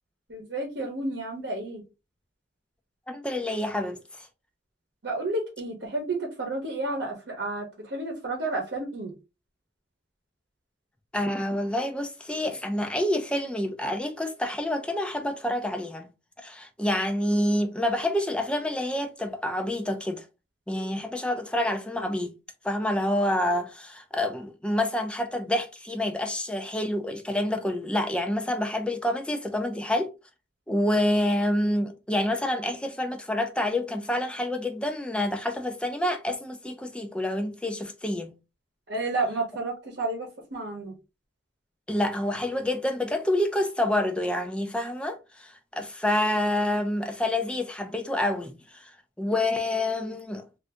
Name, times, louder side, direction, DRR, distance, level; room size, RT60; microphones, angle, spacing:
voice 1, 0.3-1.8 5.0-9.1 38.9-40.9, right 2 dB, 65° right, 0.9 m, -31 dB
voice 2, 3.1-4.3 11.1-16.1 16.4-20.2 20.7-22.3 22.6-30.1 30.7-38.3 41.9-48.9 49.2-50.4, left 1 dB, 5° left, 0.4 m, -28 dB
2.6 x 2.5 x 3.3 m
head